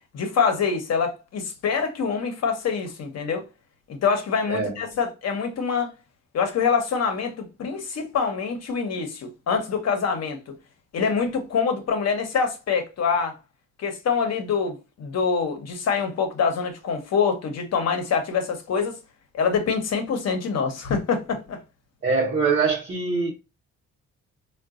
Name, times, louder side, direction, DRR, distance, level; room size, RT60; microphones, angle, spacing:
voice 1, 0.1-3.4 3.9-5.9 6.3-10.5 10.9-13.4 13.8-19.0 19.3-21.6, left 5 dB, 60° left, 0.9 m, -25 dB
voice 2, 22.0-23.3, right 4 dB, 40° right, 0.9 m, -23 dB
3.7 x 2.2 x 2.4 m
cardioid pair, 90°, 30 cm